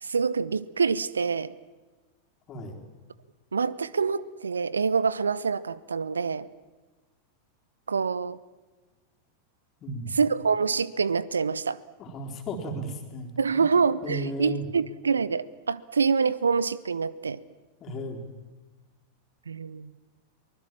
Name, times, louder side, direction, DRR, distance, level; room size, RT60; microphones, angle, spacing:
voice 1, 0.0-1.5 3.5-6.5 7.9-8.4 10.2-11.8 13.4-17.4 19.5-19.9, right 5 dB, 75° right, 19 dB, 0.6 m, -26 dB
voice 2, 9.8-10.2 12.0-13.6 14.0-14.7 17.8-18.3, equal, 30° left, 3 dB, 3.9 m, -35 dB
24.0 x 20.0 x 7.5 m, 1.2 s
figure-of-eight pair, 90°, 0 cm